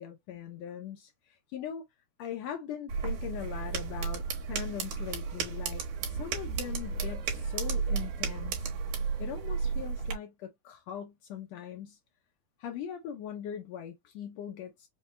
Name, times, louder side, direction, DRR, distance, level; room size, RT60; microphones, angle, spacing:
voice 1, 0.0-1.8 2.2-8.7 9.2-12.0 12.6-14.9, left 9 dB, 85° left, 1.4 m, -41 dB
sound 1, 2.9-10.1, right 5 dB, 70° right, 2.6 m, -33 dB
5.6 x 2.2 x 3.1 m
omnidirectional pair, 3.7 m